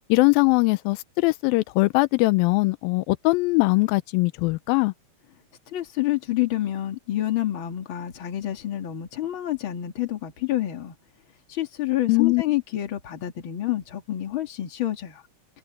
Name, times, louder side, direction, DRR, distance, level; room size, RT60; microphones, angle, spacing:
voice 1, 0.1-4.9 12.1-12.4, left 24 dB, 90° left, 2.4 m, -21 dB
voice 2, 5.7-10.9 11.5-15.2, left 13 dB, 40° left, 2.3 m, -28 dB
omnidirectional pair, 4.1 m